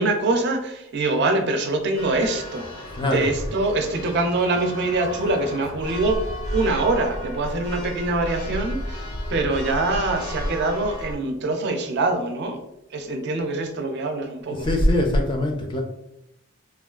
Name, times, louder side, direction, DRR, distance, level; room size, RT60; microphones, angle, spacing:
voice 1, 0.0-12.6 12.9-14.7, right 2 dB, 50° right, 5 dB, 0.4 m, -24 dB
Church bell, 2.0-11.2, equal, 85° left, 0.6 m, -33 dB
voice 2, 2.9-3.3 14.5-15.8, left 1 dB, 20° left, 1 dB, 0.4 m, -22 dB
3.4 x 2.3 x 2.3 m, 0.84 s
head